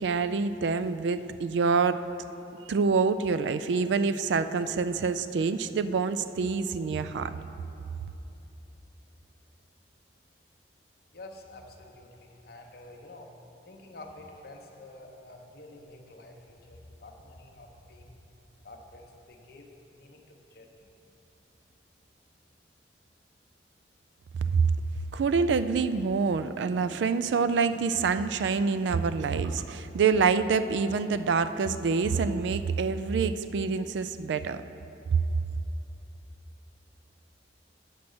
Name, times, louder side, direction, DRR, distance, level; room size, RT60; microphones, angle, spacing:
voice 1, 0.0-2.0 2.7-7.3 24.5-24.7 25.1-34.6 35.1-35.2, right 5 dB, 75° right, 12 dB, 0.3 m, -26 dB
voice 2, 11.1-13.3 13.7-18.1 18.6-21.1, left 2 dB, 55° left, 2 dB, 0.9 m, -49 dB
8.3 x 6.1 x 6.3 m, 3.0 s
head